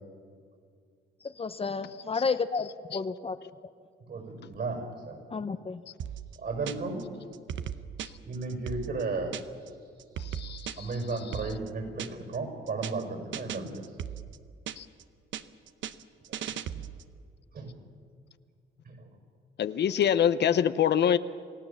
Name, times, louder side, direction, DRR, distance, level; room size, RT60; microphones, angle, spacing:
voice 1, 1.2-3.4 5.3-5.8, left 4 dB, 30° left, 0.8 m, -31 dB
voice 2, 4.1-5.2 6.4-7.1 8.2-9.3 10.0-10.1 10.8-13.9 16.3-16.9 17.5-17.7 18.8-19.1, right 3 dB, 55° right, 6.2 m, -35 dB
sound 1, 6.0-7.0 7.3-9.7 10.0-12.4 12.7-13.0 13.3-15.0 15.3-17.1, right 9 dB, 70° right, 0.9 m, -38 dB
voice 3, 10.2-10.9 14.8-14.9 19.6-21.2, left 9 dB, 60° left, 0.8 m, -25 dB
28.5 x 16.5 x 7.2 m
cardioid pair, 90°, 20 cm